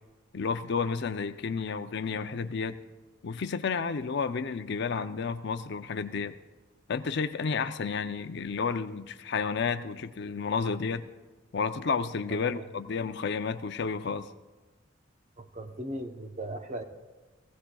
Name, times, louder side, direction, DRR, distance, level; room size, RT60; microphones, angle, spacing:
voice 1, 0.3-2.8 3.2-6.4 6.9-11.1 11.5-14.3, left 5 dB, 55° left, 10 dB, 0.5 m, -31 dB
voice 2, 12.3-12.6 15.4-16.8, right 1 dB, 35° right, 6 dB, 0.8 m, -38 dB
18.5 x 16.5 x 2.3 m, 1.2 s
head